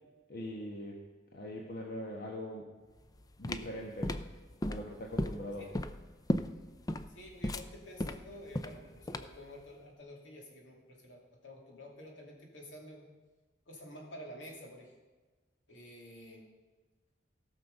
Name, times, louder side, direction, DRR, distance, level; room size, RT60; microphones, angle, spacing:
voice 1, 0.3-1.0 1.3-2.6 3.4-4.1 4.7-5.7, left 1 dB, 55° left, -1 dB, 1.3 m, -41 dB
sound 1, 3.0-9.5, left 1 dB, 20° left, 0.4 m, -36 dB
voice 2, 7.1-13.1 13.7-14.9 15.7-16.4, equal, 80° left, 0 dB, 2.8 m, -50 dB
16.5 x 6.5 x 5.4 m, 1.3 s
head